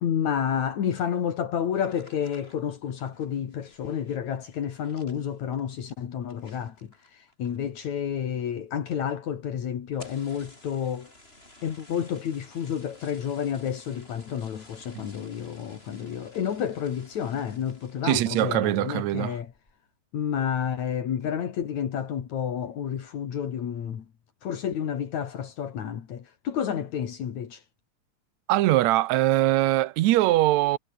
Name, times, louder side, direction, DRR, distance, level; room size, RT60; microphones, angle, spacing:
voice 1, 0.0-11.1 11.6-19.5 20.1-24.0 24.4-27.6, left 8 dB, 75° left, 3.4 m, -30 dB
sound 1, 1.7-7.8 8.1-8.6 8.9-9.0 9.3-9.4 9.8-18.2 18.6-19.0 19.4-19.8, left 1 dB, 20° left, 6.7 m, -54 dB
voice 2, 18.0-19.4 28.5-30.8, right 16 dB, 80° right, 2.0 m, -22 dB
omnidirectional pair, 3.3 m